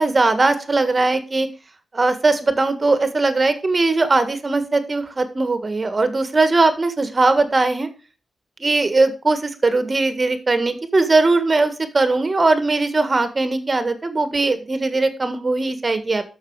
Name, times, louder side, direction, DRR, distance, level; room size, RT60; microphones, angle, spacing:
voice 1, 0.0-1.5 1.9-7.9 8.6-16.2, right 3 dB, 30° right, 10 dB, 1.7 m, -19 dB
12.5 x 6.3 x 4.8 m, 0.33 s
wide cardioid pair, 105°, 0 cm